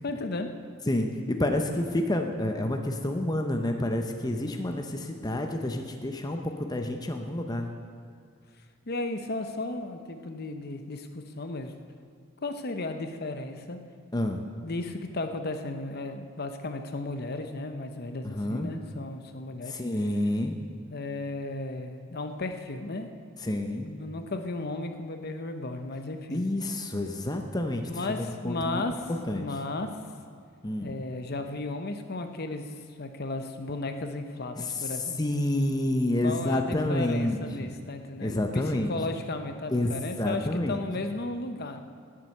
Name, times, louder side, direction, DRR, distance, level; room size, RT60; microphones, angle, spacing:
voice 1, 0.0-0.5 8.9-11.7 12.4-13.8 14.6-19.8 20.9-23.1 23.9-26.4 27.8-29.9 30.8-35.2 36.2-41.8, left 2 dB, 50° left, 7 dB, 0.8 m, -34 dB
voice 2, 0.9-7.7 14.1-14.4 18.2-18.7 19.7-20.5 23.4-23.9 26.3-28.1 28.4-28.8 29.1-29.5 30.6-31.0 34.6-34.8 35.2-37.7 38.2-38.9 39.7-40.8, left 1 dB, 20° left, 4 dB, 0.7 m, -29 dB
18.0 x 7.6 x 6.6 m, 2.2 s
head